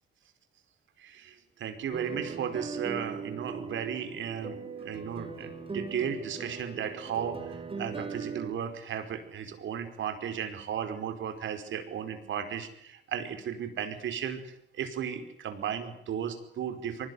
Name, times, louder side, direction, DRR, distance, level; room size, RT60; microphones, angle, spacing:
voice 1, 1.0-17.1, right 8 dB, 70° right, 9 dB, 5.0 m, -35 dB
Guitar Arpeggios - Star splendor, 1.9-8.5, right 4 dB, 30° right, 4.4 m, -39 dB
24.0 x 20.0 x 9.6 m, 0.76 s
cardioid pair, 90°, 20 cm